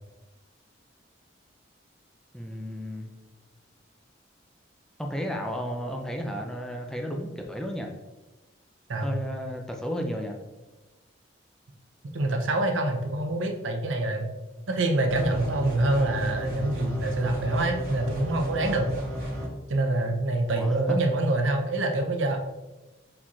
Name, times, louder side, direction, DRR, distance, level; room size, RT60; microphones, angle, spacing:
voice 1, 2.3-3.1 5.0-7.9 9.0-10.4 20.6-21.0, equal, 5° left, 2 dB, 0.4 m, -33 dB
voice 2, 12.1-14.3 14.7-18.9 19.7-22.4, right 2 dB, 85° right, 3 dB, 0.6 m, -26 dB
sound 1, 15.1-19.5, equal, 50° right, 1.3 m, -32 dB
4.4 x 3.9 x 2.4 m, 1.1 s
head